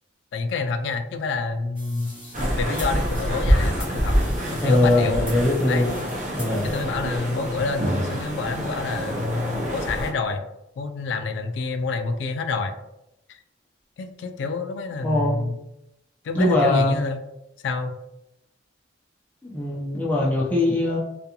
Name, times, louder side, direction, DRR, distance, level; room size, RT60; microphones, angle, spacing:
voice 1, 0.3-4.2 4.5-5.2 5.7-5.9 6.6-10.4 10.8-12.7 13.3-13.4 14.0-15.6 16.2-17.2 17.6-17.9, left 4 dB, 70° left, 7 dB, 0.3 m, -28 dB
sound 1, 1.7-6.8, equal, 10° right, 1.0 m, -43 dB
sound 2, 2.3-10.1, equal, 40° right, 0.6 m, -26 dB
voice 2, 4.6-5.9 6.3-6.7 15.0-15.4 16.3-16.9 19.4-21.0, left 1 dB, 10° left, -6 dB, 0.5 m, -21 dB
2.4 x 2.2 x 2.8 m, 0.88 s
head